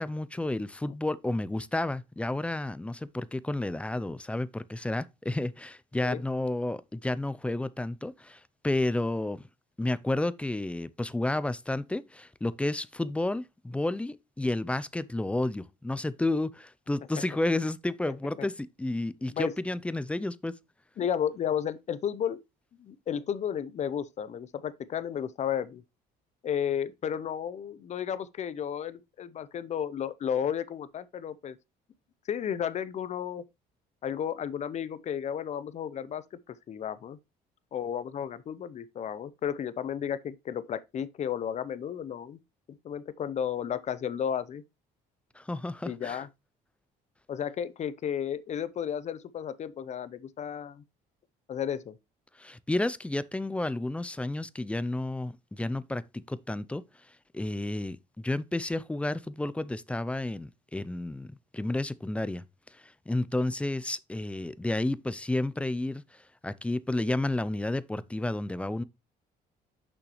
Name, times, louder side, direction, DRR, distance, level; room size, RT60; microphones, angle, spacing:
voice 1, 0.0-9.4 9.8-20.5 45.4-46.2 52.4-56.8 57.3-62.4 63.1-66.0 66.4-68.8, left 2 dB, 5° left, 0.4 m, -31 dB
voice 2, 18.1-18.5 19.3-19.5 21.0-22.4 22.8-25.8 26.4-31.6 32.3-33.4 34.0-37.2 37.7-42.4 42.7-44.6 45.9-46.3 47.3-50.8 51.5-52.0, left 8 dB, 45° left, 0.7 m, -33 dB
6.3 x 6.0 x 3.1 m
cardioid pair, 110°, 17 cm